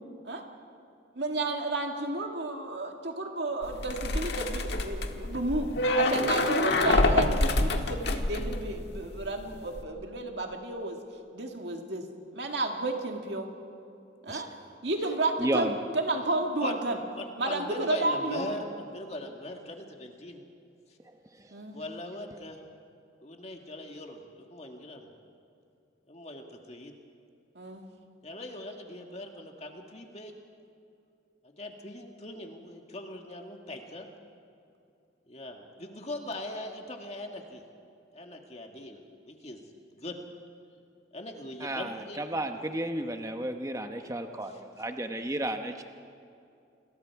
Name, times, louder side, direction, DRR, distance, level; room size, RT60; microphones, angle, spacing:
voice 1, 1.1-11.0 11.3-12.1 12.3-13.5 14.2-14.5 14.8-17.0 17.4-18.5 21.5-21.8 27.6-27.8, right 2 dB, 65° right, 3 dB, 2.1 m, -32 dB
sound 1, 3.6-9.2 9.5-9.8, left 1 dB, 60° left, 1.5 m, -27 dB
voice 2, 15.4-15.7 41.6-45.8, right 1 dB, 15° right, 6 dB, 0.9 m, -33 dB
voice 3, 17.1-20.5 21.7-22.6 23.2-25.1 26.1-26.9 28.2-30.3 31.4-34.1 35.3-37.6 38.1-39.6 40.0-40.2 41.1-42.2 44.5-44.6, left 1 dB, 35° left, 3 dB, 1.9 m, -41 dB
29.0 x 22.0 x 4.8 m, 2.6 s
head